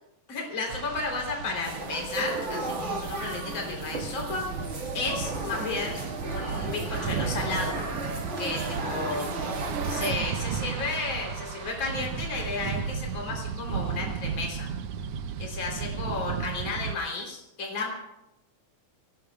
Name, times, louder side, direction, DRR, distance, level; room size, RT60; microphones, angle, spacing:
voice 1, 0.3-4.4 4.9-7.8 8.4-9.3 9.9-14.7 15.4-17.9, left 3 dB, 35° left, 0 dB, 4.3 m, -33 dB
sound 1, 0.7-17.0, right 6 dB, 70° right, 1.5 m, -34 dB
sound 2, 1.6-10.1, right 2 dB, 30° right, 1.4 m, -34 dB
25.0 x 19.5 x 2.4 m, 0.87 s
omnidirectional pair, 3.7 m